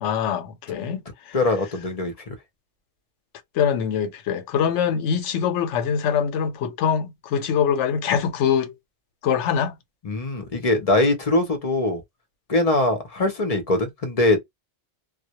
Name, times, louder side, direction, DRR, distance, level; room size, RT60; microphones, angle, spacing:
voice 1, 0.0-1.0 3.6-8.7 9.2-9.7, left 7 dB, 85° left, 0.9 m, -23 dB
voice 2, 1.3-2.1 10.0-12.0 12.5-14.4, left 2 dB, 45° left, 0.5 m, -22 dB
2.1 x 2.0 x 2.8 m
omnidirectional pair, 1.2 m